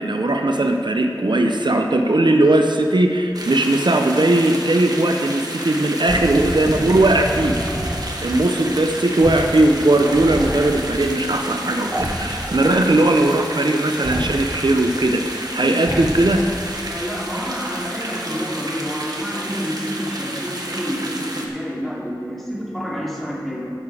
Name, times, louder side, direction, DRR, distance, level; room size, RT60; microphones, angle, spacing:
voice 1, 0.0-7.6 8.2-16.5, right 2 dB, 70° right, 4 dB, 0.7 m, -18 dB
sound 1, 3.3-21.5, right 1 dB, 55° right, 1.4 m, -31 dB
sound 2, 6.0-8.1 9.2-9.6 9.9-10.7 11.9-12.8 14.0-14.6 15.8-16.7, equal, 20° right, 1.2 m, -28 dB
voice 2, 16.9-23.7, equal, ahead, -5 dB, 2.8 m, -28 dB
14.0 x 7.0 x 4.9 m, 2.7 s
wide cardioid pair, 40°, 8 cm